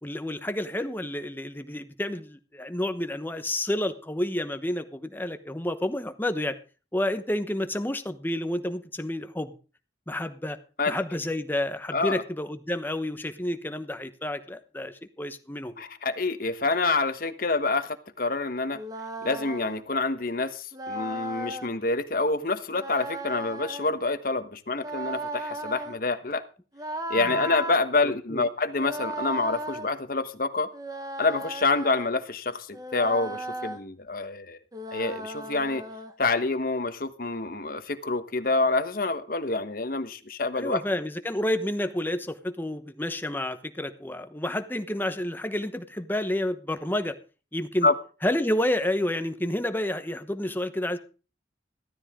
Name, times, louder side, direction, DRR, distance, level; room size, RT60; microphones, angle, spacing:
voice 1, 0.0-6.6 6.9-9.5 10.1-10.6 10.9-15.8 27.1-27.3 28.0-28.4 40.5-47.2 47.5-47.9 48.2-51.0, left 1 dB, 10° left, 1.0 m, -30 dB
voice 2, 15.8-18.8 19.2-26.4 27.1-30.7 31.2-34.6 34.9-35.8 36.2-40.8 47.8-47.9, left 3 dB, 55° left, 1.2 m, -27 dB
sound 1, 18.7-19.8 20.7-21.7 22.7-24.0 24.7-26.0 26.7-27.8 28.7-29.9 30.7-32.1 32.7-33.8 34.7-36.1, right 1 dB, 20° right, 1.3 m, -36 dB
15.0 x 13.0 x 3.7 m
head